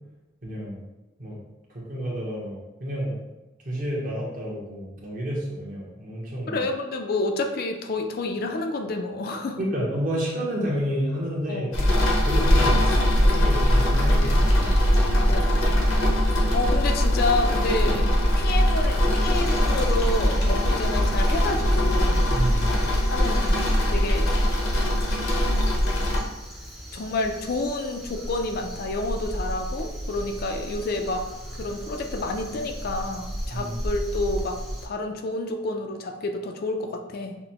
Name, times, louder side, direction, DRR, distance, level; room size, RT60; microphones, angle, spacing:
voice 1, 0.4-0.8 1.2-1.4 1.7-3.2 3.6-6.6 9.6-11.7 12.2-12.8 13.1-14.8 22.3-22.7 33.5-33.7, equal, 45° right, -4 dB, 1.0 m, -30 dB
voice 2, 6.5-9.6 11.5-11.7 15.1-15.8 16.5-18.1 18.4-22.3 23.1-23.6 23.9-24.3 26.9-31.3 31.6-37.4, left 2 dB, 50° left, 4 dB, 0.4 m, -29 dB
sound 1, 11.7-26.2, equal, 85° left, 0.8 m, -21 dB
Crow, 19.2-34.9, equal, ahead, 0.5 m, -35 dB
5.8 x 2.1 x 2.9 m, 1.0 s
head